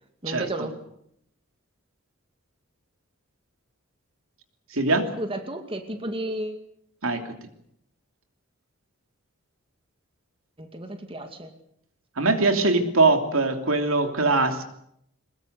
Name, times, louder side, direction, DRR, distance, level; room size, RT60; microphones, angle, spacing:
voice 1, 0.2-0.7 5.2-6.6 10.6-11.5, right 1 dB, 25° right, 6 dB, 2.3 m, -32 dB
voice 2, 4.7-5.1 7.0-7.2 12.2-14.6, right 3 dB, 75° right, 6 dB, 3.0 m, -21 dB
23.0 x 21.0 x 8.1 m, 0.73 s
head